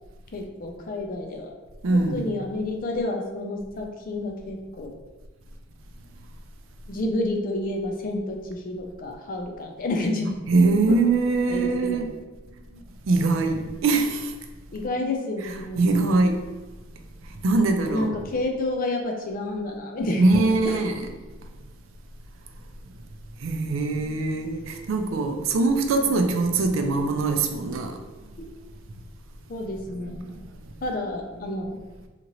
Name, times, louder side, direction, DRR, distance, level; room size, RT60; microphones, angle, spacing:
voice 1, 0.3-1.5 1.9-4.9 6.9-10.3 11.5-12.0 14.7-15.9 17.9-20.8 28.4-28.5 29.5-30.4 30.8-31.8, left 2 dB, 45° left, 0.4 m, -30 dB
voice 2, 1.8-2.3 10.5-12.2 12.7-14.3 15.4-16.5 17.2-18.2 20.2-21.1 21.4-21.5 23.4-28.0 29.9-30.4, right 3 dB, 75° right, 0.4 m, -23 dB
2.9 x 2.5 x 2.9 m
head